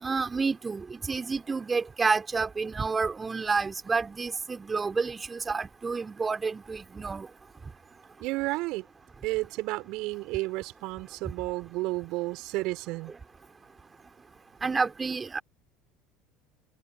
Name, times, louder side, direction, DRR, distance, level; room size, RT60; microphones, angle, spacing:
voice 1, 0.0-7.3 14.6-15.4, right 4 dB, 20° right, 3.4 m, -29 dB
voice 2, 8.2-8.9 9.2-13.1, right 22 dB, 55° right, 4.8 m, -32 dB
figure-of-eight pair, 65°, 0 cm